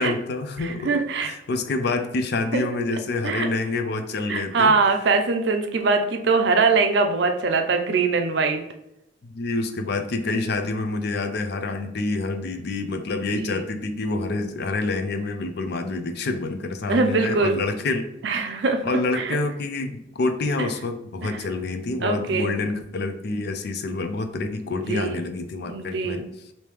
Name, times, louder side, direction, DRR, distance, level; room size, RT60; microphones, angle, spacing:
voice 1, 0.0-5.1 9.2-18.1 18.4-26.2, left 3 dB, 55° left, 7 dB, 0.4 m, -27 dB
voice 2, 0.6-1.3 2.5-2.6 3.2-3.5 4.3-8.6 13.2-13.6 16.9-17.6 18.2-18.8 19.2-19.4 21.2-21.3 22.0-22.5 24.9-25.2 25.7-26.3, right 4 dB, 60° right, 5 dB, 0.5 m, -22 dB
3.4 x 2.7 x 3.0 m, 0.85 s
head